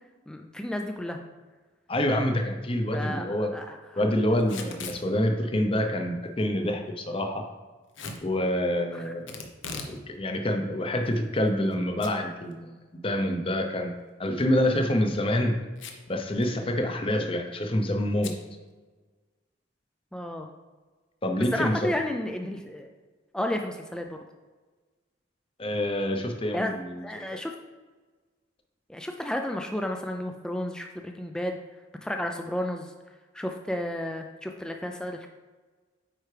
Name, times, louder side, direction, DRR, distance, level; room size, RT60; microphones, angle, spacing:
voice 1, 0.3-1.2 2.9-3.8 8.9-9.1 20.1-20.5 21.5-22.9 23.3-24.2 26.5-27.5 28.9-31.6 32.0-32.9 33.3-35.3, left 1 dB, 5° left, 3 dB, 0.3 m, -32 dB
voice 2, 1.9-3.5 4.0-7.4 8.2-9.5 9.9-12.7 13.0-13.9 14.2-15.6 16.1-18.3 21.2-21.9 25.6-27.0 27.3-27.4, left 1 dB, 30° left, 5 dB, 0.7 m, -27 dB
Packing tape duct tape / Tearing, 4.4-5.0 7.9-8.2 9.3-10.0 10.3-10.4 11.1-11.7 12.0-12.1 12.5-12.6 14.6-14.8 15.8-16.1 16.4-16.5 16.8-17.1 18.2-18.4, left 4 dB, 75° left, 0.8 m, -39 dB
8.9 x 4.7 x 3.3 m, 1.3 s
head